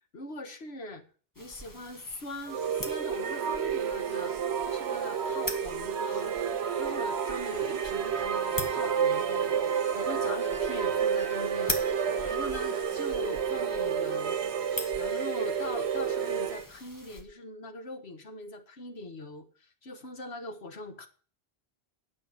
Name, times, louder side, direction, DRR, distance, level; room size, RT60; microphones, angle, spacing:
voice 1, 0.1-1.0 1.4-4.3 4.6-6.4 6.8-11.8 12.2-14.4 14.9-21.1, left 2 dB, 75° left, 6 dB, 1.7 m, -42 dB
sound 1, 1.3-17.2, left 1 dB, 20° left, 1.7 m, -43 dB
sound 2, 2.5-16.7, right 7 dB, 85° right, 1.1 m, -30 dB
sound 3, 7.5-12.8, left 1 dB, 40° left, 4.1 m, -45 dB
9.3 x 6.2 x 7.8 m, 0.40 s
omnidirectional pair, 1.1 m